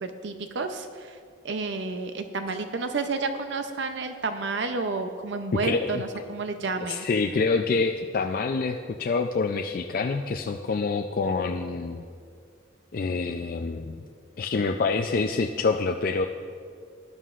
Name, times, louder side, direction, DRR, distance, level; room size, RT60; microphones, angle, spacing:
voice 1, 0.0-1.2 1.4-7.1, right 3 dB, 65° right, 7 dB, 0.6 m, -30 dB
voice 2, 5.5-6.2 6.9-12.0 12.9-14.0 14.4-16.3, left 4 dB, 45° left, 4 dB, 0.4 m, -26 dB
18.5 x 11.0 x 2.5 m, 2.2 s
head